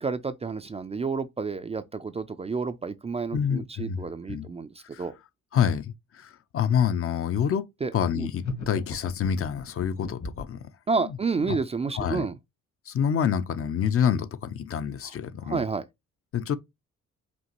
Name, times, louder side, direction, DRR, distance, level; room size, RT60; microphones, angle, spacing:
voice 1, 0.0-4.7 5.0-5.1 7.8-7.9 8.2-8.3 10.9-12.3 15.5-15.8, right 4 dB, 20° right, 0.4 m, -30 dB
voice 2, 3.3-4.5 4.9-5.1 5.5-7.6 7.9-10.7 11.0-11.2 11.5-11.6 11.9-12.3 12.9-15.6 16.3-16.6, left 8 dB, 50° left, 0.6 m, -27 dB
sound 1, 8.4-10.6, left 3 dB, 70° left, 2.0 m, -37 dB
5.2 x 2.9 x 3.0 m
cardioid pair, 90°, 30 cm